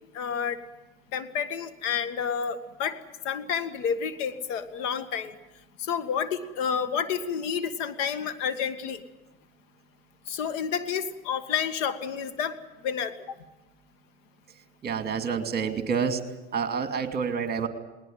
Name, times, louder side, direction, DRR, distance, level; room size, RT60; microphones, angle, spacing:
voice 1, 0.1-0.6 1.1-3.0 3.2-5.4 5.8-9.0 10.3-12.6 12.8-13.4, left 7 dB, 65° left, 12 dB, 1.9 m, -30 dB
voice 2, 14.8-16.2 16.5-17.7, right 6 dB, 25° right, 7 dB, 2.6 m, -28 dB
20.0 x 19.5 x 9.4 m, 1.0 s
hypercardioid pair, 105°, 40 cm